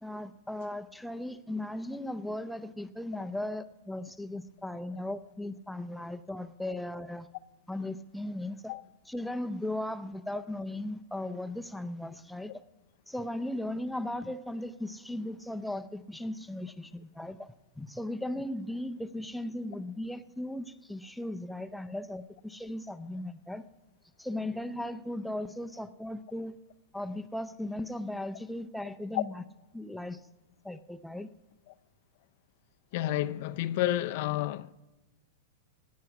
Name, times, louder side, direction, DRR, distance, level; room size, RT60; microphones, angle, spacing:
voice 1, 0.0-7.3 7.7-8.7 9.1-12.5 13.1-17.5 17.8-23.6 24.2-26.6 26.9-29.4 29.7-30.2 30.6-31.3, left 1 dB, ahead, 0.6 m, -37 dB
voice 2, 32.9-34.7, left 15 dB, 55° left, 0.5 m, -30 dB
17.5 x 9.5 x 5.9 m
hypercardioid pair, 135°, 0 cm